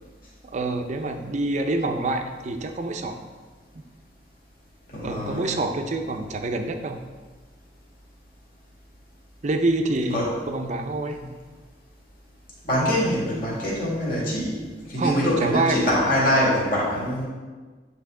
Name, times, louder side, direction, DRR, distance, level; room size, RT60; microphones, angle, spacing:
voice 1, 0.4-3.2 5.0-7.0 9.4-11.2 15.0-15.8, right 2 dB, 40° right, 5 dB, 0.5 m, -26 dB
voice 2, 4.9-5.5 10.1-10.3 11.2-11.3 12.6-14.6 14.9-17.3, equal, 50° left, -6 dB, 2.0 m, -24 dB
9.0 x 3.4 x 3.7 m, 1.4 s
head